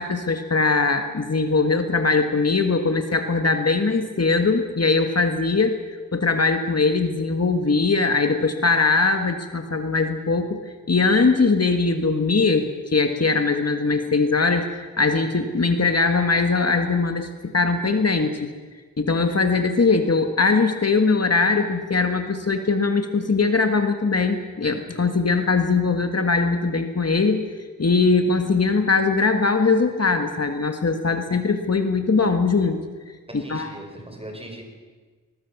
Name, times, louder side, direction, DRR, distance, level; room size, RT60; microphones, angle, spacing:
voice 1, 0.0-5.7 6.1-10.6 10.9-18.5 19.0-27.4 27.8-32.8 33.3-33.7, left 4 dB, 50° left, 6 dB, 1.6 m, -21 dB
voice 2, 33.3-34.6, right 1 dB, 15° right, 3 dB, 4.7 m, -39 dB
21.5 x 20.0 x 7.1 m, 1.4 s
wide cardioid pair, 90°, 33 cm